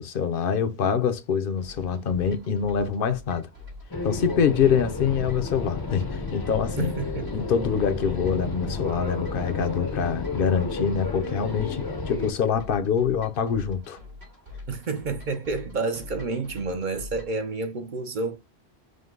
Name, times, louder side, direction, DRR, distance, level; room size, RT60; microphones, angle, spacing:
voice 1, 0.0-3.5 4.0-6.9 7.3-14.0, left 7 dB, 60° left, 0.8 m, -25 dB
sound 1, 1.6-17.4, left 3 dB, 75° right, 2.7 m, -45 dB
sound 2, 3.9-12.3, left 3 dB, 25° left, 0.6 m, -32 dB
voice 2, 6.8-7.3 14.7-18.4, right 3 dB, 55° right, 0.7 m, -29 dB
5.1 x 2.1 x 3.7 m
omnidirectional pair, 1.1 m